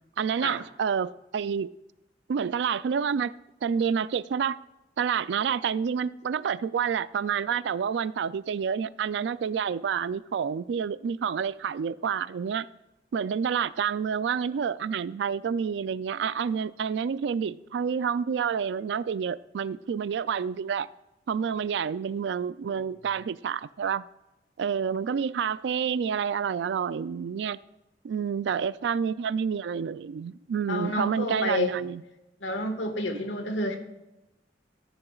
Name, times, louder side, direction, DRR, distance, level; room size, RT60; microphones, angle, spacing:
voice 1, 0.2-1.7 2.3-3.3 3.6-4.6 5.0-12.7 13.1-20.9 21.3-24.0 24.6-27.6 28.0-32.0, right 7 dB, 70° right, 0.3 m, -28 dB
voice 2, 30.7-31.8 32.4-33.8, left 1 dB, 85° left, 1.5 m, -30 dB
14.5 x 9.8 x 2.4 m
head